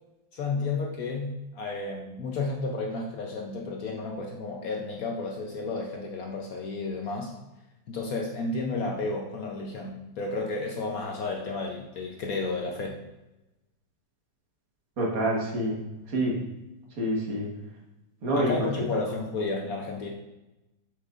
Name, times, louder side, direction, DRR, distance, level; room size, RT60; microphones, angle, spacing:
voice 1, 0.3-7.3 7.9-13.0 18.3-20.1, left 3 dB, 65° left, 1 dB, 1.0 m, -32 dB
voice 2, 15.0-15.8 16.1-16.4 17.0-17.5 18.2-18.7, right 1 dB, 50° right, -3 dB, 1.8 m, -27 dB
6.6 x 6.4 x 2.5 m, 1.0 s
omnidirectional pair, 2.0 m